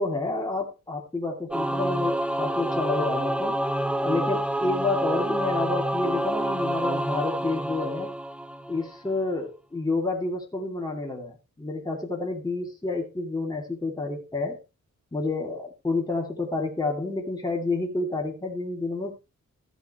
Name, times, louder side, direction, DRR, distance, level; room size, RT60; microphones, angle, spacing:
voice 1, 0.0-3.6 4.0-8.1 8.7-14.6 15.1-19.2, left 3 dB, 15° left, -1 dB, 2.6 m, -29 dB
Singing / Musical instrument, 1.5-9.0, right 1 dB, 5° right, 0.5 m, -28 dB
14.0 x 8.1 x 3.1 m, 0.27 s
wide cardioid pair, 130°, 30 cm